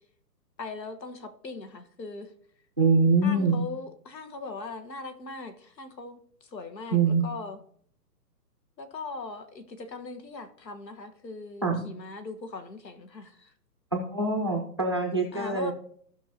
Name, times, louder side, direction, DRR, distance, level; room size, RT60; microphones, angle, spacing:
voice 1, 0.6-2.3 3.2-7.6 8.8-13.5 15.3-15.7, left 3 dB, 85° left, 1.6 m, -40 dB
voice 2, 2.8-3.6 6.9-7.2 11.6-11.8 13.9-15.7, right 3 dB, 20° right, 0.4 m, -24 dB
15.5 x 5.7 x 2.9 m
hypercardioid pair, 150°, 49 cm